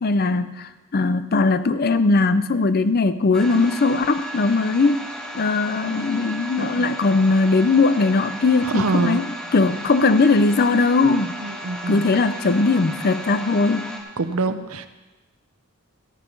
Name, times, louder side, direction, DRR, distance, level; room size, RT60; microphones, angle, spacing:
voice 1, 0.0-5.0 5.3-9.3 9.5-11.4 11.9-13.9, left 3 dB, 45° left, 12 dB, 0.6 m, -19 dB
sound 1, 3.3-14.0, equal, 5° left, 1.5 m, -35 dB
voice 2, 8.6-9.2 11.4-12.1 14.2-14.9, right 3 dB, 70° right, 11 dB, 0.7 m, -25 dB
14.0 x 7.0 x 5.4 m, 1.2 s
head